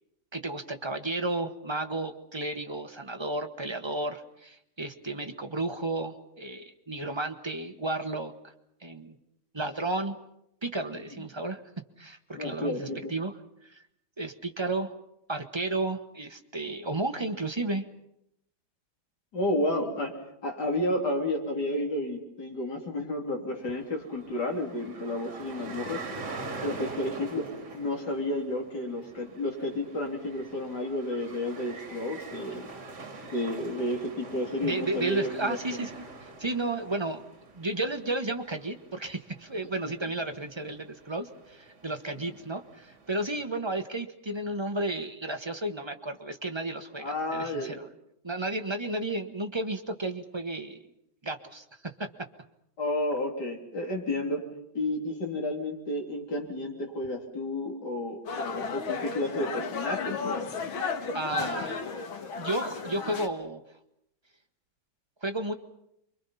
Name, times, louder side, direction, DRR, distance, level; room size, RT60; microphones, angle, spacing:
voice 1, 0.3-8.3 8.8-9.2 9.5-10.2 10.6-11.6 12.0-13.3 13.6-13.8 14.2-14.9 15.3-17.9 34.6-35.9 36.2-37.2 37.5-47.8 48.2-50.8 51.2-52.1 61.1-62.0 62.4-63.6 65.2-65.5, right 2 dB, 20° right, 5 dB, 0.9 m, -33 dB
voice 2, 12.3-13.1 19.3-20.2 20.4-26.0 26.6-27.5 27.7-32.7 33.2-35.6 42.2-42.3 47.0-47.8 52.8-54.4 54.7-60.7, left 1 dB, 55° left, 0 dB, 4.0 m, -31 dB
sound 1, 23.5-43.4, right 3 dB, 55° right, 2.9 m, -45 dB
sound 2, 58.3-63.3, left 5 dB, 90° left, 2.4 m, -33 dB
28.5 x 23.5 x 5.7 m, 0.78 s
omnidirectional pair, 2.2 m